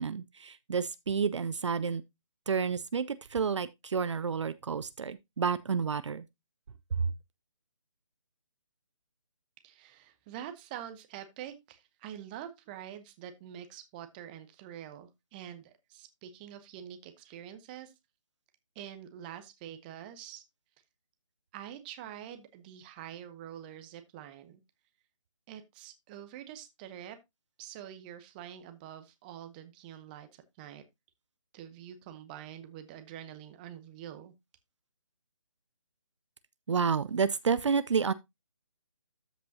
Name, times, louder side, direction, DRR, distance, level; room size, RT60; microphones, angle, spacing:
voice 1, 0.0-2.0 2.5-6.2 6.9-7.1 36.7-38.1, right 6 dB, 60° right, 0.6 m, -30 dB
voice 2, 9.6-17.9 18.7-20.4 21.5-24.6 25.5-27.2 27.6-30.3 30.6-30.8 31.5-34.3, right 10 dB, 15° right, 0.9 m, -46 dB
13.5 x 5.2 x 2.7 m
figure-of-eight pair, 155°, 17 cm